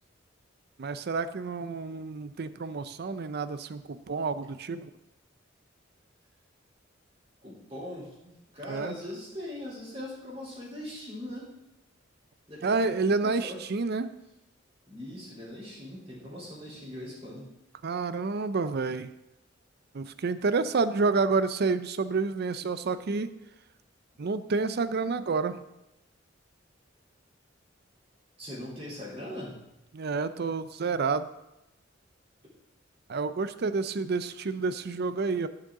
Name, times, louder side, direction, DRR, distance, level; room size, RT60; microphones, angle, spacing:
voice 1, 0.8-4.9 8.7-8.9 12.6-14.1 17.8-19.1 19.9-23.3 24.2-25.6 29.9-31.3 33.1-35.5, right 4 dB, 55° right, 13 dB, 0.5 m, -29 dB
voice 2, 7.4-11.5 12.5-13.7 14.9-17.5 28.4-29.6, left 1 dB, 30° right, -7 dB, 3.4 m, -41 dB
12.0 x 6.6 x 3.7 m, 0.92 s
head